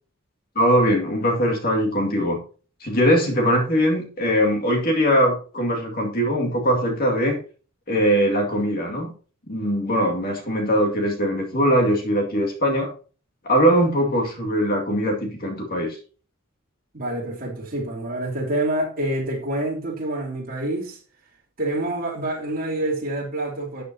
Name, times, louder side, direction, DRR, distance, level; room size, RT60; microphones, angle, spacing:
voice 1, 0.6-2.4 2.8-7.4 7.9-9.1 9.5-12.9 13.4-16.0, equal, 45° left, 2.2 m, -21 dB
voice 2, 16.9-21.0 21.6-23.8, right 1 dB, 40° right, 3.3 m, -27 dB
12.5 x 8.3 x 2.8 m
head